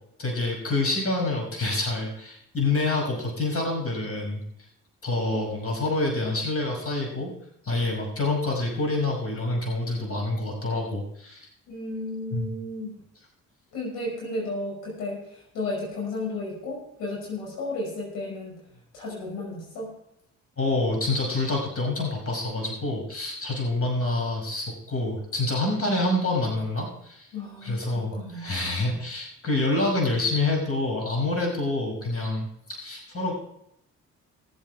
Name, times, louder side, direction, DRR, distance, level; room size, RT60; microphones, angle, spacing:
voice 1, 0.2-4.4 5.0-7.3 7.6-11.5 12.3-12.5 20.6-27.3 27.6-33.3, left 2 dB, 40° left, 0 dB, 5.7 m, -27 dB
voice 2, 11.7-13.0 13.7-18.6 18.9-19.9 27.3-29.0, left 2 dB, 80° left, -2 dB, 5.7 m, -34 dB
19.5 x 7.9 x 4.7 m, 0.75 s
hypercardioid pair, 55°, 37 cm